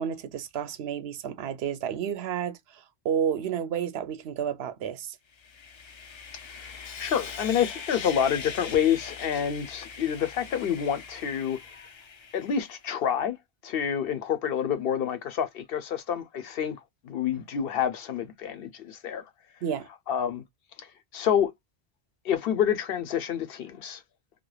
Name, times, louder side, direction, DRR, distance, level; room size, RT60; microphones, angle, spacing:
voice 1, 0.0-5.2 19.6-19.9, right 8 dB, 80° right, 0.8 m, -31 dB
Sawing, 5.3-12.8, left 6 dB, 50° left, 0.3 m, -41 dB
voice 2, 7.0-11.9 12.3-13.4 13.6-16.8 17.0-19.2 20.1-20.4 20.8-20.9 21.1-21.5 22.2-24.0, left 8 dB, 70° left, 0.8 m, -28 dB
3.1 x 2.2 x 2.2 m
omnidirectional pair, 1.0 m